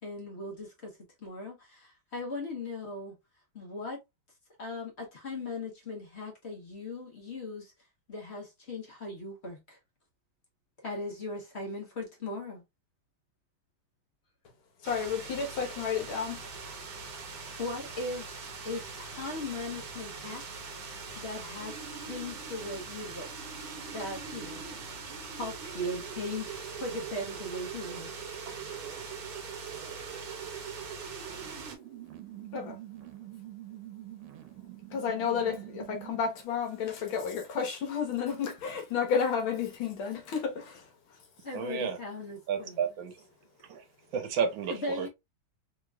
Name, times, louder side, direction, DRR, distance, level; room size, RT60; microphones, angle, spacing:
voice 1, 0.0-3.2 3.5-4.0 4.6-7.7 8.1-9.8 10.8-12.6 17.6-20.4 21.2-23.5 23.9-24.6 25.4-28.3 41.4-42.8 44.7-45.1, left 2 dB, 40° left, 1.0 m, -38 dB
voice 2, 14.8-16.5 32.5-32.8 34.9-41.2, left 6 dB, 75° left, 1.8 m, -31 dB
sound 1, 14.8-31.8, right 4 dB, 55° right, 1.2 m, -43 dB
sound 2, 21.5-36.4, right 10 dB, 90° right, 1.5 m, -45 dB
voice 3, 41.5-42.0 42.5-43.3 43.6-43.8 44.1-45.1, right 6 dB, 70° right, 1.4 m, -32 dB
3.8 x 3.0 x 2.2 m
omnidirectional pair, 2.2 m